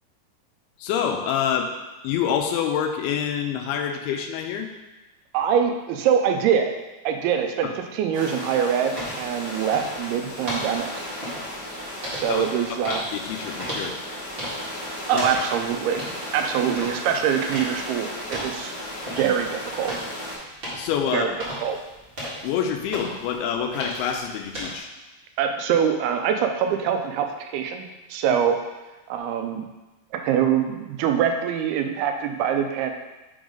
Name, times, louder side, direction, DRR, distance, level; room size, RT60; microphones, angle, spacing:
voice 1, 0.8-1.7 2.0-4.7 7.6-7.7 12.3-12.5 12.9-14.0 15.1-15.2 20.7-21.3 22.4-24.9, left 8 dB, 90° left, 4 dB, 2.6 m, -26 dB
voice 2, 5.3-6.7 7.1-10.9 12.1-13.0 15.1-16.0 16.3-18.7 19.2-20.0 21.1-21.3 21.6-21.8 25.4-27.3 27.5-28.6 29.1-29.7 30.1-32.9, right 8 dB, 85° right, 5 dB, 2.6 m, -24 dB
sound 1, 8.1-20.4, left 1 dB, 35° left, 1.8 m, -35 dB
sound 2, 9.0-24.8, equal, 55° right, 0.6 m, -36 dB
6.2 x 3.9 x 5.0 m, 1.1 s
omnidirectional pair, 4.4 m